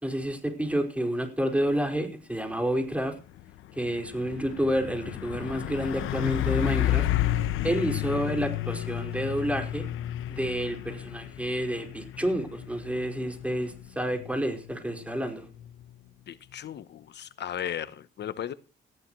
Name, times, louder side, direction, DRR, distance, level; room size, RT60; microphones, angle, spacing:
voice 1, 0.0-3.1 3.8-7.1 7.6-9.8 10.3-15.5, equal, 5° right, 4.9 m, -29 dB
Truck, 2.8-3.0 3.4-16.0, left 13 dB, 90° left, 0.9 m, -32 dB
voice 2, 16.3-18.5, left 10 dB, 60° left, 0.9 m, -36 dB
19.0 x 14.0 x 3.1 m
cardioid pair, 90°, 20 cm